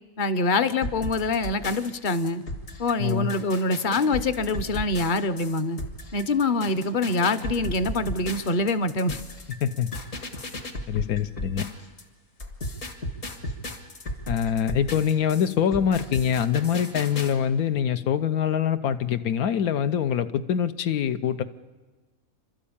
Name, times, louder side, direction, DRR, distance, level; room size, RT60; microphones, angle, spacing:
voice 1, 0.2-2.4 2.8-5.8 6.1-9.2, left 2 dB, 45° left, 11 dB, 0.8 m, -25 dB
sound 1, 0.8-12.0 12.4-17.3, left 1 dB, 65° left, 2.2 m, -35 dB
voice 2, 3.0-3.3 9.6-9.9 10.9-11.6 14.3-21.4, left 8 dB, 85° left, 10 dB, 1.3 m, -24 dB
28.0 x 13.0 x 8.6 m, 1.3 s
omnidirectional pair, 1.5 m